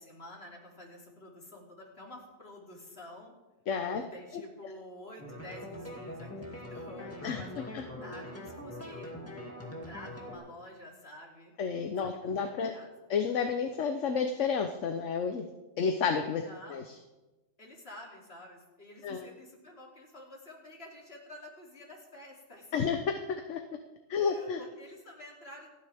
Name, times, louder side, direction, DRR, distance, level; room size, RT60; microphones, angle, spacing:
voice 1, 0.0-3.3 3.9-7.7 8.0-11.5 12.0-13.1 16.4-16.8 17.6-22.9 24.2-25.7, left 1 dB, 50° left, -2 dB, 3.1 m, -50 dB
voice 2, 3.7-4.0 4.3-4.4 7.2-7.8 11.6-12.7 13.1-15.5 15.8-16.4 16.7-16.8 19.0-19.3 22.7-23.6 24.1-24.6, left 6 dB, 70° left, 6 dB, 1.1 m, -31 dB
sound 1, 5.2-10.4, left 1 dB, 10° left, 2.3 m, -43 dB
27.5 x 9.5 x 3.5 m, 1.1 s
omnidirectional pair, 1.4 m